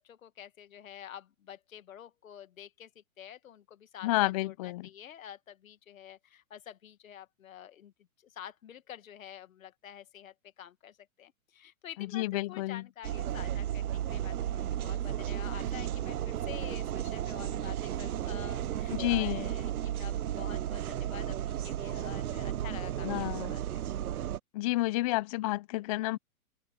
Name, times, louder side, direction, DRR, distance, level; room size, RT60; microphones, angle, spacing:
voice 1, 0.0-7.9 8.2-23.8, left 10 dB, 70° left, 2.0 m, -48 dB
voice 2, 4.0-4.9 12.0-12.8 18.9-19.5 23.0-23.5 24.5-26.2, left 19 dB, 25° left, 0.4 m, -30 dB
sound 1, 13.0-24.4, right 11 dB, 90° right, 0.6 m, -34 dB
hypercardioid pair, 120°, 43 cm